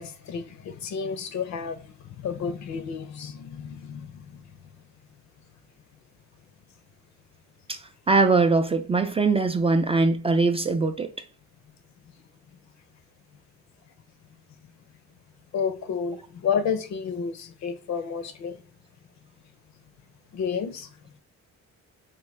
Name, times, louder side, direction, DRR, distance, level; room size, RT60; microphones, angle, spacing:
voice 1, 0.0-1.8 2.2-4.2 15.5-18.6 20.3-20.9, left 6 dB, 65° left, 0.6 m, -30 dB
voice 2, 8.1-11.1, right 3 dB, 20° right, 0.3 m, -21 dB
3.5 x 2.2 x 3.2 m
cardioid pair, 90°, 30 cm